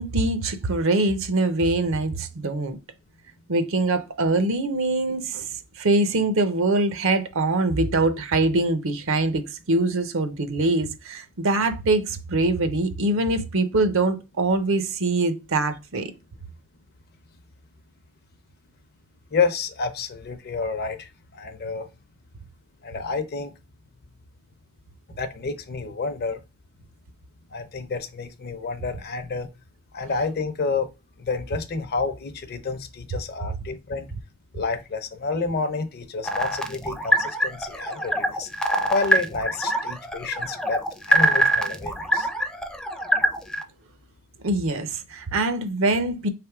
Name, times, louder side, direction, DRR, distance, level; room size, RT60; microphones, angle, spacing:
voice 1, 0.0-2.8 3.5-5.5 5.8-16.1 44.4-46.3, right 2 dB, 70° right, 0.7 m, -23 dB
voice 2, 19.3-21.9 22.8-23.5 25.2-26.4 27.5-29.5 29.9-30.9 31.2-34.1 34.5-38.5 38.9-40.8 41.1-42.3, left 4 dB, 50° left, 0.6 m, -29 dB
sound 1, 36.2-43.6, equal, 5° left, 0.4 m, -24 dB
3.4 x 3.0 x 4.7 m
head